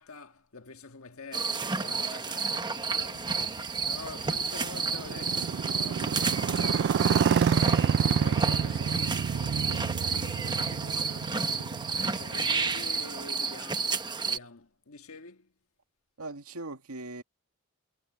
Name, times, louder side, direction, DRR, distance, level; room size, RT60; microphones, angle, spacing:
voice 1, 0.0-15.5, left 3 dB, 70° left, 1.7 m, -47 dB
sound 1, 1.3-14.4, right 4 dB, 20° right, 1.1 m, -31 dB
Motorcycle, 3.0-13.0, right 7 dB, 50° right, 0.3 m, -29 dB
voice 2, 16.2-17.2, right 2 dB, 90° right, 2.0 m, -39 dB
head